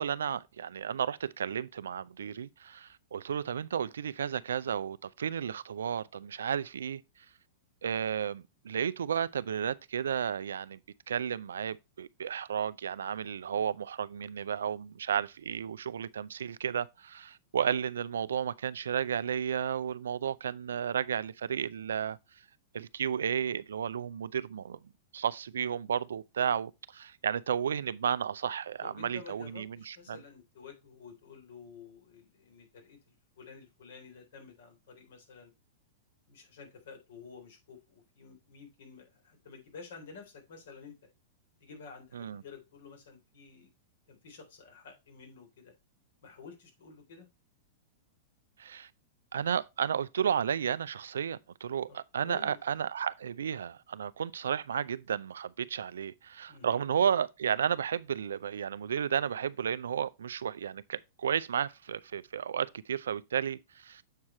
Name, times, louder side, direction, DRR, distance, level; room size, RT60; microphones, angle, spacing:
voice 1, 0.0-7.0 7.8-10.8 11.1-22.2 22.7-24.8 25.1-30.2 42.1-42.4 48.6-48.9 49.3-64.0, right 8 dB, 85° right, 0.4 m, -33 dB
voice 2, 28.8-35.5 36.3-41.0 41.6-43.7 44.1-45.7 46.2-47.3 51.9-52.6 56.5-56.8, left 5 dB, 75° left, 3.5 m, -51 dB
7.6 x 4.7 x 4.3 m
hypercardioid pair, 115°, 0 cm